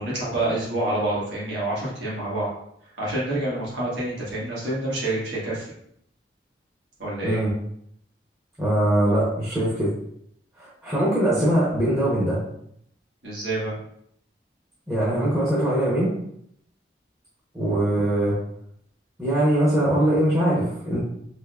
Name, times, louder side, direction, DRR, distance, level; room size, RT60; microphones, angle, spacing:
voice 1, 0.0-2.5 3.0-5.7 7.0-7.4 13.2-13.7, right 1 dB, 80° right, -7 dB, 1.4 m, -27 dB
voice 2, 8.6-9.9 10.6-12.4 14.9-16.1 17.5-18.4 19.2-21.0, right 1 dB, 15° right, -8 dB, 0.7 m, -22 dB
3.4 x 3.0 x 2.3 m, 0.71 s
head